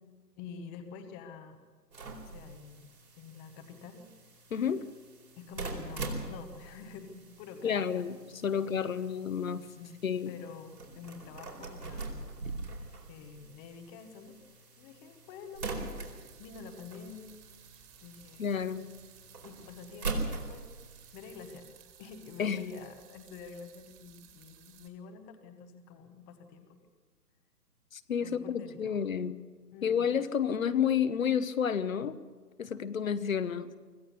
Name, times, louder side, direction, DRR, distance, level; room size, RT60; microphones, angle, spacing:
voice 1, 0.4-1.6 2.1-2.9 3.2-4.1 5.4-8.0 8.5-8.7 9.8-9.9 10.3-12.2 13.1-14.4 14.8-15.7 16.4-17.4 18.0-18.4 19.4-20.8 21.1-26.8 28.2-29.1 29.7-30.1, left 5 dB, 15° left, 7 dB, 0.9 m, -48 dB
sound 1, 1.9-21.6, right 3 dB, 75° right, 4.5 m, -43 dB
voice 2, 4.5-4.9 7.6-8.2 8.4-9.7 10.0-10.4 18.4-18.9 22.4-22.7 27.9-29.4 29.8-32.2 32.6-33.7, left 7 dB, 55° left, 12 dB, 1.1 m, -30 dB
sound 2, 15.6-24.9, right 11 dB, 20° right, 2.2 m, -58 dB
25.0 x 16.0 x 6.9 m, 1.4 s
figure-of-eight pair, 135°, 48 cm